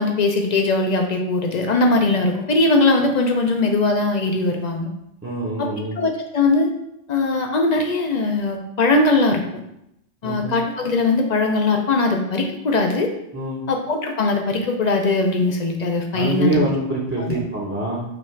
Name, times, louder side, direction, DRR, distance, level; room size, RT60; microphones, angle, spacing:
voice 1, 0.0-4.9 5.6-5.7 6.0-6.7 7.1-9.6 10.2-13.1 13.7-16.7 17.2-17.4, left 3 dB, 55° left, 3 dB, 0.4 m, -20 dB
voice 2, 5.2-6.0 10.2-10.6 13.3-13.6 16.1-18.0, right 1 dB, 15° right, -5 dB, 0.6 m, -25 dB
5.0 x 2.4 x 4.4 m, 0.81 s
omnidirectional pair, 1.2 m